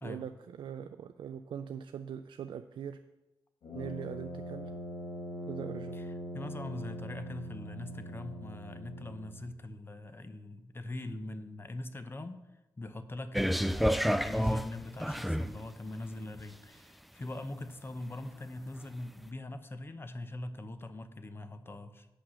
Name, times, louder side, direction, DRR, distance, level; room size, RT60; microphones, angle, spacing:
voice 1, 0.0-3.0 3.7-4.7 5.5-6.0, right 8 dB, 80° right, 9 dB, 0.4 m, -41 dB
Brass instrument, 3.6-9.5, equal, 85° left, 1.7 m, -42 dB
voice 2, 6.3-12.4 12.8-22.1, left 2 dB, 30° left, 10 dB, 0.8 m, -42 dB
sound 1, 13.3-15.6 16.3-16.4, equal, ahead, 0.3 m, -29 dB
8.3 x 6.0 x 6.2 m, 1.0 s
cardioid pair, 90°, 8 cm